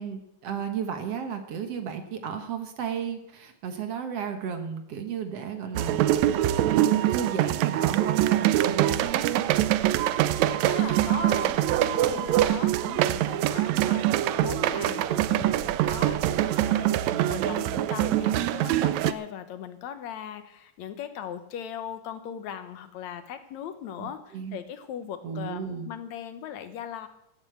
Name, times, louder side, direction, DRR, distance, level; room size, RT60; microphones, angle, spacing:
voice 1, 0.0-6.0 6.6-9.5 17.0-17.8 24.0-24.6 25.2-25.9, right 7 dB, 60° right, 6 dB, 2.1 m, -33 dB
sound 1, 5.8-19.1, right 13 dB, 75° right, 1.9 m, -24 dB
voice 2, 10.2-27.1, left 9 dB, 70° left, 9 dB, 2.2 m, -39 dB
15.5 x 8.5 x 8.0 m, 0.83 s
omnidirectional pair, 3.4 m